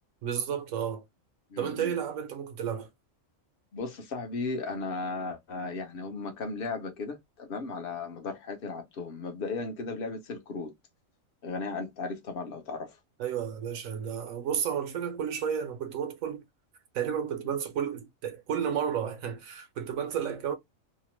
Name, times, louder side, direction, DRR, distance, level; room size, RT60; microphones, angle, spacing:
voice 1, 0.2-1.0 1.6-2.9 13.2-16.4 16.9-20.6, right 8 dB, 80° right, 1.0 m, -32 dB
voice 2, 1.5-1.9 3.7-10.7 11.4-13.0, left 3 dB, 50° left, 0.8 m, -36 dB
2.8 x 2.1 x 3.0 m
omnidirectional pair, 1.4 m